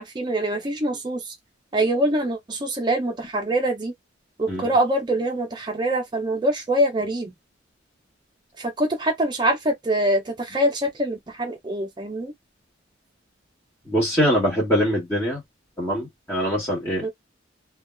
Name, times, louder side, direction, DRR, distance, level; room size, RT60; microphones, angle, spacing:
voice 1, 0.0-1.3 1.7-3.9 4.4-7.3 8.6-12.3 17.0-17.1, right 1 dB, 20° right, 0.4 m, -24 dB
voice 2, 13.9-15.4 15.8-17.1, equal, 15° left, 1.0 m, -23 dB
3.2 x 2.2 x 2.2 m
head